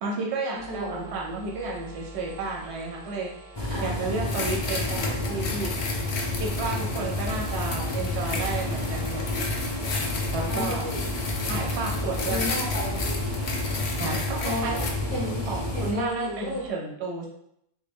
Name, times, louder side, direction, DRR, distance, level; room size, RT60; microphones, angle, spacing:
voice 1, 0.0-3.3 3.8-5.7 6.4-9.2 10.3-10.9 11.5-12.4 14.0-14.8 15.5-17.3, right 3 dB, 80° right, -1 dB, 0.9 m, -32 dB
sound 1, 0.5-16.7, right 2 dB, 55° right, 1.0 m, -44 dB
voice 2, 0.7-1.2 3.7-4.4 10.5-11.1 12.2-13.2 14.4-14.8 15.1-16.7, left 1 dB, 30° right, -5 dB, 1.1 m, -33 dB
sound 2, 3.6-15.9, left 1 dB, 35° left, 0.4 m, -30 dB
sound 3, 4.2-14.9, left 4 dB, 65° left, 0.7 m, -34 dB
3.4 x 2.1 x 3.3 m, 0.74 s
omnidirectional pair, 1.1 m